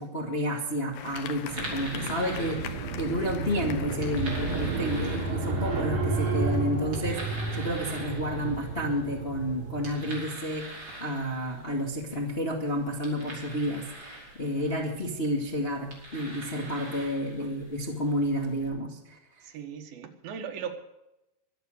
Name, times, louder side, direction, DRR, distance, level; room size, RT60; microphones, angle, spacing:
voice 1, 0.0-10.6 11.0-19.5, equal, 20° left, 0 dB, 1.7 m, -31 dB
sound 1, 0.9-5.3 6.0-6.9, left 9 dB, 85° left, 3.0 m, -43 dB
sound 2, 0.9-18.7, right 1 dB, 30° right, 5.6 m, -45 dB
sound 3, 1.4-10.3, right 4 dB, 60° right, 5.0 m, -32 dB
voice 2, 5.2-5.5 14.7-14.9 19.4-20.7, right 7 dB, 80° right, 5 dB, 3.3 m, -39 dB
23.5 x 8.3 x 6.5 m, 0.91 s
omnidirectional pair, 4.2 m